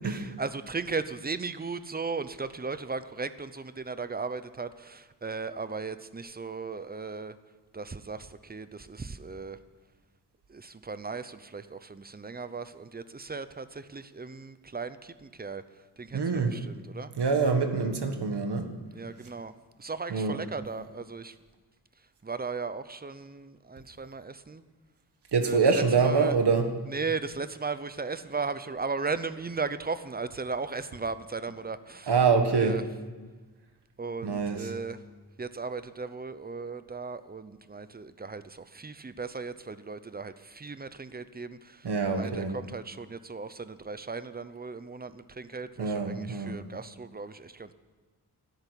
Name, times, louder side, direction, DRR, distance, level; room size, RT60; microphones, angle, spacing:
voice 1, 0.0-7.4 7.7-9.6 10.5-15.6 16.0-17.1 18.9-19.5 19.8-21.4 22.2-24.6 25.4-26.4 26.9-32.1 32.5-32.8 34.0-35.0 35.4-47.7, right 4 dB, 25° right, 13 dB, 0.7 m, -36 dB
voice 2, 16.1-16.5 17.2-18.7 20.1-20.4 25.3-26.7 32.1-32.8 34.2-34.7 41.8-42.6 45.8-46.6, right 5 dB, 75° right, 6 dB, 1.7 m, -25 dB
13.0 x 10.5 x 9.9 m, 1.3 s
wide cardioid pair, 120°, 40 cm